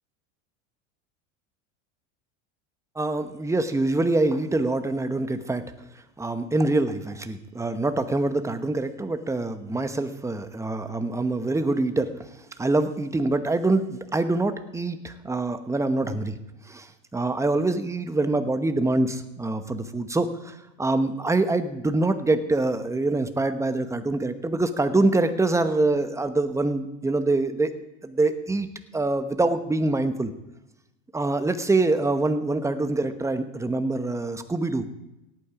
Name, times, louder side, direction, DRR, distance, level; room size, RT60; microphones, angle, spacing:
voice 1, 3.0-5.6 6.2-12.1 12.6-16.4 16.7-16.9 17.1-27.7 28.0-28.7 28.9-30.3 31.1-34.8, right 2 dB, 10° right, 9 dB, 1.0 m, -25 dB
17.5 x 9.1 x 5.0 m, 0.93 s
supercardioid pair, 105°, 39 cm